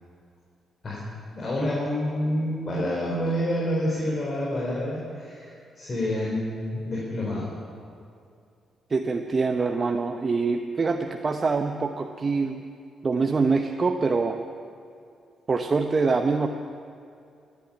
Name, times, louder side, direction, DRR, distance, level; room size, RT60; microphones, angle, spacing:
voice 1, 1.3-7.5, left 1 dB, 45° left, -5 dB, 4.3 m, -28 dB
voice 2, 8.9-12.7 13.0-14.4 15.5-16.5, right 4 dB, 40° right, 4 dB, 0.9 m, -24 dB
14.0 x 10.0 x 9.9 m, 2.5 s
cardioid pair, 70°, 0 cm